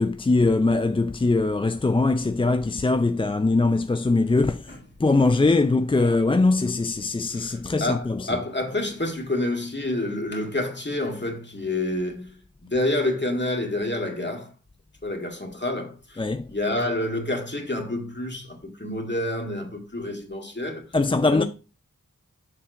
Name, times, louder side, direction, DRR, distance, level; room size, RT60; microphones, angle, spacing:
voice 1, 0.0-4.6 5.0-8.3 16.2-16.5 20.9-21.4, left 3 dB, 15° left, 0.3 m, -21 dB
voice 2, 7.3-14.5 15.0-20.9 21.3-21.4, left 1 dB, 35° left, 2.0 m, -28 dB
7.2 x 3.7 x 5.1 m
wide cardioid pair, 40°, 33 cm